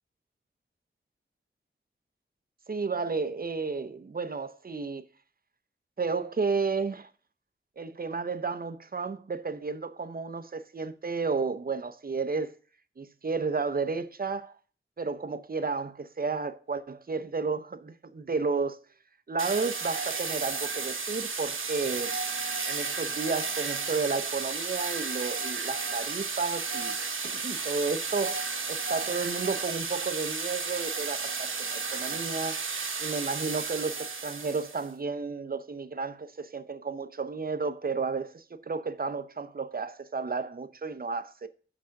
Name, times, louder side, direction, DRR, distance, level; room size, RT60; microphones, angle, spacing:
voice 1, 2.7-5.0 6.0-7.1 7.8-12.5 13.0-14.6 15.0-18.8 19.3-22.2 22.7-27.0 27.2-32.6 33.0-41.5, right 4 dB, 45° right, 0.7 m, -32 dB
sound 1, 19.4-34.9, right 4 dB, 70° right, 1.0 m, -33 dB
6.1 x 5.8 x 6.3 m
wide cardioid pair, 70°, 21 cm